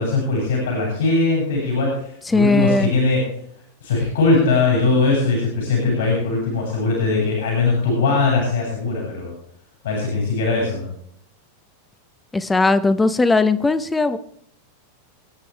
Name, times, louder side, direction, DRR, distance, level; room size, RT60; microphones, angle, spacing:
voice 1, 0.0-3.2 3.8-9.3 9.8-10.9, left 3 dB, 60° left, -2 dB, 7.1 m, -20 dB
voice 2, 2.3-2.9 12.3-14.2, left 3 dB, 10° left, 12 dB, 1.0 m, -18 dB
27.0 x 9.7 x 3.5 m, 0.69 s
figure-of-eight pair, 90°, 0 cm